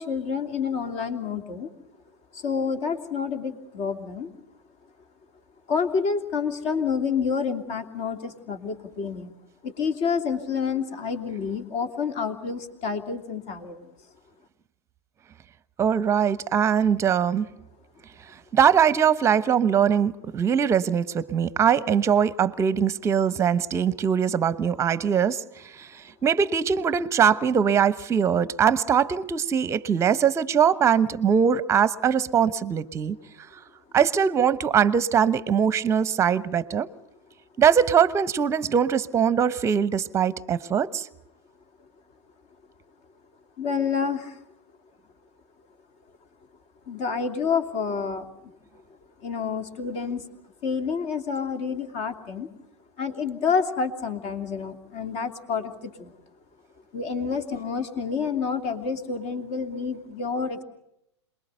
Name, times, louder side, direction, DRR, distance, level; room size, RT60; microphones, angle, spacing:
voice 1, 0.0-1.7 2.3-4.3 5.7-9.3 9.6-13.9 43.6-44.4 46.9-48.3 49.2-50.3 50.6-52.5 53.0-56.2 56.9-60.6, left 5 dB, 40° left, 2.7 m, -28 dB
voice 2, 15.8-17.5 18.5-33.2 33.9-36.9 37.6-41.1, right 7 dB, 20° right, 1.0 m, -22 dB
27.5 x 21.0 x 6.8 m
figure-of-eight pair, 100°, 15 cm